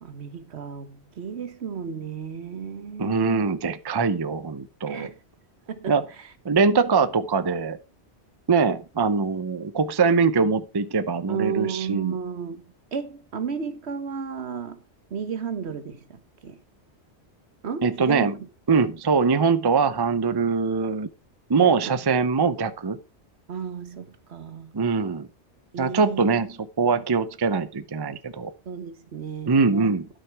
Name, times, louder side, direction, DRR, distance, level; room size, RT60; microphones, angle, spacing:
voice 1, 0.0-3.4 4.9-5.1 5.7-5.9 11.3-12.6 12.9-14.8 15.1-16.6 17.6-18.3 21.6-22.0 23.5-24.8 25.7-26.3 28.7-29.9, right 6 dB, 70° right, 1.3 m, -33 dB
voice 2, 3.0-5.1 5.9-6.0 6.4-7.8 8.5-12.2 17.8-18.4 18.7-21.1 21.5-23.0 24.7-25.3 25.8-28.5 29.5-30.1, right 5 dB, 25° right, 0.6 m, -22 dB
12.5 x 5.8 x 4.6 m
omnidirectional pair, 1.2 m